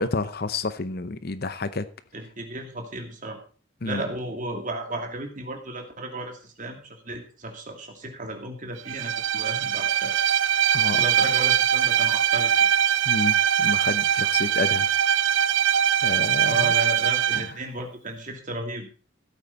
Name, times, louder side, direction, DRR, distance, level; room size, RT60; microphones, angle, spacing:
voice 1, 0.0-1.9 3.8-4.0 10.7-11.1 13.1-14.9 16.0-16.7 17.3-17.6, left 3 dB, 50° left, 13 dB, 0.7 m, -30 dB
voice 2, 2.1-3.4 3.8-10.2 10.9-12.7 16.4-18.9, right 1 dB, 40° right, 4 dB, 2.5 m, -34 dB
Bowed string instrument, 8.9-17.5, right 9 dB, 65° right, 0.4 m, -22 dB
15.5 x 8.7 x 4.2 m, 0.39 s
head